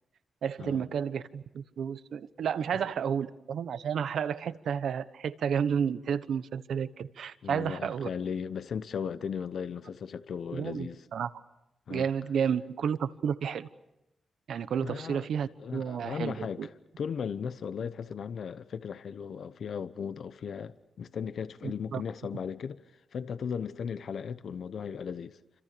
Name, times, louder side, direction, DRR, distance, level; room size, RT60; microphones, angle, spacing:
voice 1, 0.4-8.1 10.5-11.3 11.9-13.7 14.5-16.7 21.6-22.0, right 7 dB, 80° right, 1.1 m, -31 dB
voice 2, 7.4-11.0 11.9-12.1 14.8-15.3 15.6-16.7 17.0-22.8 23.1-25.4, left 7 dB, 65° left, 0.9 m, -36 dB
29.5 x 26.5 x 6.8 m
wide cardioid pair, 150°, 0 cm